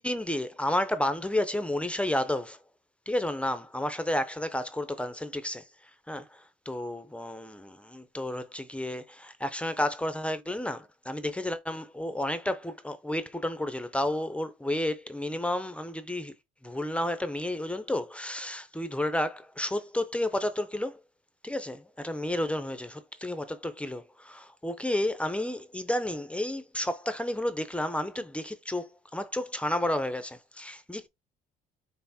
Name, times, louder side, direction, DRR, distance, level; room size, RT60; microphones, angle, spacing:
voice 1, 0.0-2.6 3.1-5.6 6.1-16.3 16.6-21.0 21.4-31.1, left 1 dB, 5° left, 0.5 m, -31 dB
5.7 x 2.0 x 4.1 m
cardioid pair, 110°, 17 cm